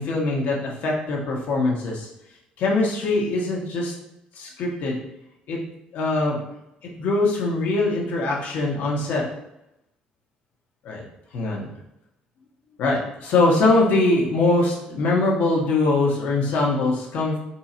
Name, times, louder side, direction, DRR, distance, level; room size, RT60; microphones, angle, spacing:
voice 1, 0.0-2.1 2.6-3.9 4.4-5.0 5.5-5.6 5.9-6.4 7.0-9.2 10.8-11.0 11.3-11.7 12.8-17.4, left 2 dB, 65° left, -2 dB, 1.4 m, -22 dB
4.5 x 2.7 x 4.3 m, 0.84 s
cardioid pair, 155°, 3 cm